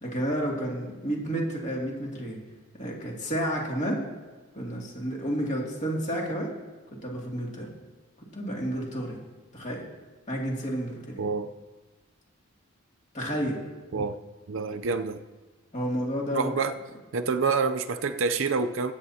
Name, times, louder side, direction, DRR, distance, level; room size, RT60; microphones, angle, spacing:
voice 1, 0.0-2.4 2.7-4.0 4.5-6.5 6.9-7.7 8.3-9.2 9.5-9.9 10.3-11.3 13.1-13.6 15.7-16.5, equal, 35° left, -2 dB, 2.5 m, -31 dB
voice 2, 11.2-11.5 13.9-14.2 14.5-15.2 16.3-16.7 17.1-18.9, right 4 dB, 60° right, 9 dB, 0.5 m, -27 dB
21.5 x 8.8 x 2.8 m, 1.3 s
head